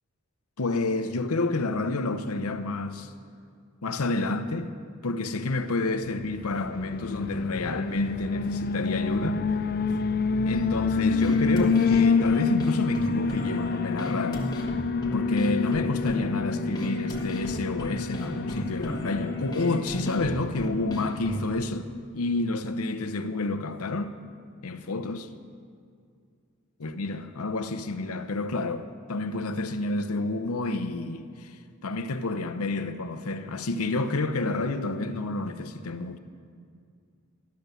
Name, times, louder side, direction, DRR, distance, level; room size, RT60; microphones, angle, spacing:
voice 1, 0.6-3.1 3.8-4.7 5.0-9.4 10.5-14.5 15.1-21.9 22.1-24.1 24.6-25.3 26.8-36.2, left 2 dB, 80° left, 0.8 m, -29 dB
Alarm, 6.3-19.8, left 4 dB, 45° left, 0.4 m, -27 dB
sound 1, 10.5-21.5, equal, 20° left, 1.4 m, -35 dB
14.0 x 10.5 x 6.8 m
head